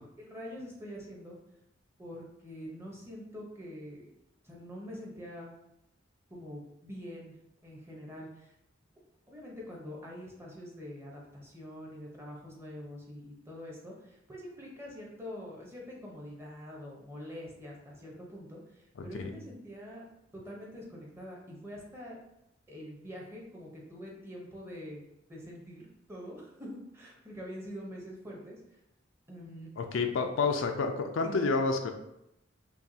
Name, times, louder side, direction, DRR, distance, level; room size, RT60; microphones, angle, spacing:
voice 1, 0.2-1.4 2.0-4.1 4.4-5.5 6.3-7.4 7.6-8.5 9.3-20.0 20.3-22.2 22.7-25.0 25.3-28.6 29.3-29.7 31.2-31.4, equal, 15° right, -3 dB, 0.8 m, -45 dB
voice 2, 29.8-31.9, left 4 dB, 80° left, 5 dB, 0.4 m, -29 dB
5.6 x 2.3 x 2.7 m, 0.87 s
head